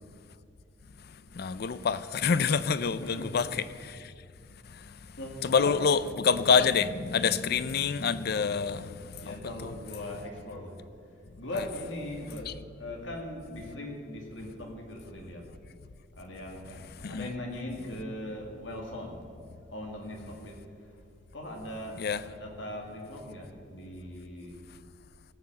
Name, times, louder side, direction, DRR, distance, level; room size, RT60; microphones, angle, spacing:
voice 1, 1.3-4.0 5.4-9.3 9.6-9.7 11.6-11.7 12.5-12.6 17.0-17.3 22.0-22.2, left 6 dB, 55° left, 0.5 m, -27 dB
voice 2, 3.0-3.4 5.2-5.8 8.4-8.6 9.2-10.8 11.4-12.5 12.8-15.4 16.1-19.2 19.7-20.9 21.3-24.5, left 1 dB, 70° left, 2.3 m, -40 dB
17.5 x 5.9 x 7.6 m
head